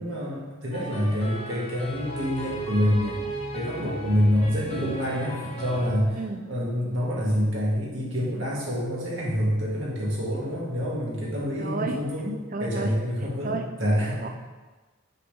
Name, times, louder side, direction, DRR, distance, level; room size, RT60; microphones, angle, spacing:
voice 1, 0.0-3.2 3.5-6.2 6.5-14.2, equal, 60° right, -5 dB, 1.8 m, -27 dB
sound 1, 0.7-5.9, right 1 dB, 25° left, 0.9 m, -36 dB
voice 2, 11.6-12.0 12.5-12.9 13.4-13.7 14.2-14.3, right 3 dB, 40° right, 5 dB, 0.5 m, -31 dB
6.7 x 3.8 x 5.0 m, 1.3 s
head